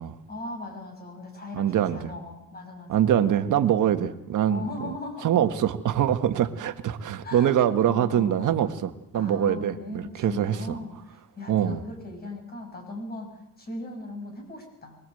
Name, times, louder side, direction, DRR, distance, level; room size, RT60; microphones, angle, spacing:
voice 1, 0.3-3.3 3.8-4.1 4.4-5.6 7.2-8.7 9.1-15.0, left 2 dB, 30° left, 4 dB, 6.3 m, -39 dB
voice 2, 1.5-2.1 2.9-4.9 5.2-10.6 11.5-11.8, right 10 dB, 65° right, 8 dB, 1.6 m, -24 dB
24.0 x 20.0 x 7.9 m, 0.85 s
cardioid pair, 140°, 33 cm